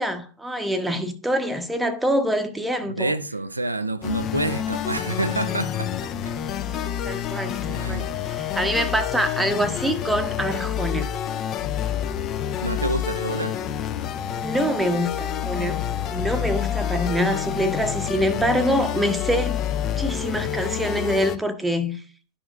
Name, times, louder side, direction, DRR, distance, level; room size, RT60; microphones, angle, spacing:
voice 1, 0.0-3.1 5.5-5.6 7.0-11.1 14.3-15.8 16.1-22.0, equal, 5° right, 0.8 m, -25 dB
voice 2, 2.9-6.3 7.7-8.1 12.6-13.6, right 2 dB, 85° right, 0.4 m, -28 dB
sound 1, 4.0-21.4, left 10 dB, 35° left, 0.5 m, -28 dB
11.5 x 4.9 x 2.4 m
figure-of-eight pair, 90°, 0 cm